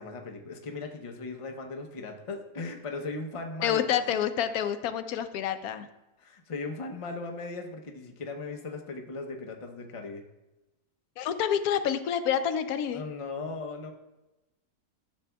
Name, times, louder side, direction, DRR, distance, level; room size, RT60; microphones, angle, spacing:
voice 1, 0.0-4.2 6.2-10.2 12.9-13.9, left 3 dB, 40° left, 3 dB, 0.5 m, -38 dB
voice 2, 3.6-5.9 11.2-13.0, left 9 dB, 70° left, 11 dB, 1.0 m, -28 dB
11.5 x 7.2 x 2.3 m, 1.0 s
omnidirectional pair, 1.7 m